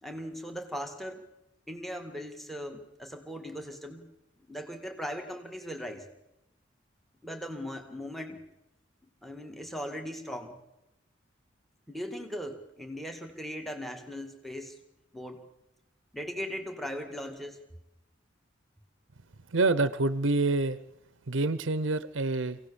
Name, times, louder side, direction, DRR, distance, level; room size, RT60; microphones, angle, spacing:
voice 1, 0.0-1.2 1.7-4.1 4.5-6.1 7.2-8.4 9.2-10.6 11.9-14.8 15.1-15.4 16.1-17.6, equal, ahead, 4 dB, 2.0 m, -39 dB
voice 2, 19.5-20.8 21.3-22.6, right 3 dB, 80° right, 15 dB, 0.8 m, -27 dB
26.0 x 17.5 x 7.0 m, 0.90 s
head